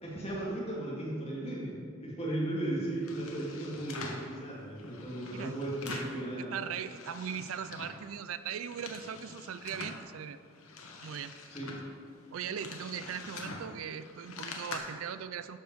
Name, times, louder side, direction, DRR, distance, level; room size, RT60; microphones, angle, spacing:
voice 1, 0.0-6.7 11.5-11.8, right 1 dB, 30° left, -5 dB, 2.3 m, -36 dB
sound 1, 2.9-4.3 4.8-6.2 6.5-8.0 8.4-10.0 10.5-14.8, left 3 dB, 90° left, 1.2 m, -45 dB
voice 2, 6.5-10.4 11.0-11.3 12.3-15.6, right 8 dB, 80° right, 13 dB, 0.4 m, -39 dB
12.5 x 5.3 x 4.6 m, 2.1 s
head